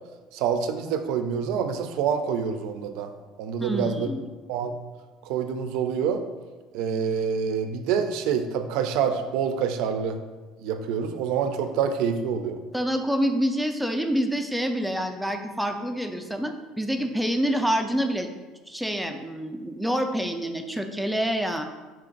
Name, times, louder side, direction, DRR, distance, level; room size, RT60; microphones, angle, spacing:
voice 1, 0.3-3.1 3.4-4.1 4.5-4.8 5.2-6.2 6.7-10.2 10.6-12.6, right 7 dB, 70° right, 7 dB, 0.4 m, -26 dB
voice 2, 3.6-4.3 12.7-18.3 18.7-21.6, equal, ahead, 5 dB, 0.4 m, -27 dB
4.5 x 2.5 x 3.8 m, 1.3 s
supercardioid pair, 115°, 0 cm